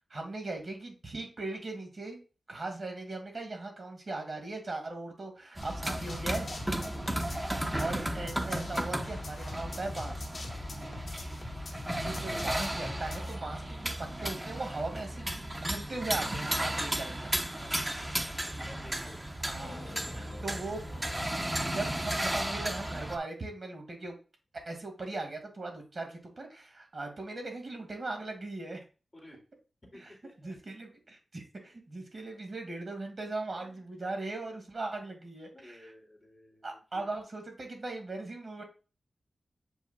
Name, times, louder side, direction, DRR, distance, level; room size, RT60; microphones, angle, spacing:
voice 1, 0.1-2.2 2.5-6.5 7.8-10.3 12.0-15.3 15.6-17.4 19.4-19.8 20.1-20.8 21.7-24.2 24.7-28.8 29.9-30.1 30.4-35.9 36.6-38.6, right 2 dB, 50° right, 3 dB, 2.0 m, -39 dB
sound 1, 5.6-13.3, left 3 dB, 55° left, 1.3 m, -43 dB
sound 2, 5.6-23.2, right 1 dB, 15° right, 0.8 m, -34 dB
voice 2, 17.6-19.3 29.1-29.4 29.9-30.6 33.5-33.7 35.5-37.1, left 1 dB, 20° left, 0 dB, 2.3 m, -54 dB
sound 3, 19.3-22.8, left 3 dB, 75° left, 1.1 m, -50 dB
7.7 x 5.3 x 2.2 m, 0.33 s
wide cardioid pair, 95°, 0 cm